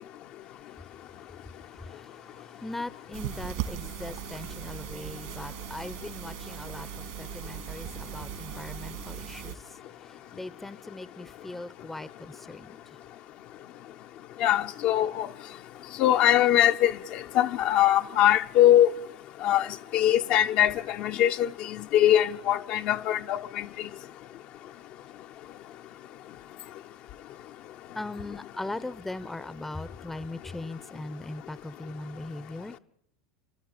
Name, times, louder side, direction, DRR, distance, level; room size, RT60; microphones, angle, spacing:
voice 1, 1.9-2.3 2.6-9.6 10.3-12.8 28.0-32.7, left 2 dB, 10° left, 0.9 m, -39 dB
sound 1, 3.1-9.6, right 11 dB, 65° right, 2.6 m, -38 dB
voice 2, 14.4-15.3 16.0-18.9 19.4-19.7 19.9-23.7, left 12 dB, 50° left, 0.9 m, -22 dB
30.0 x 12.5 x 9.0 m
hypercardioid pair, 90°, 2 cm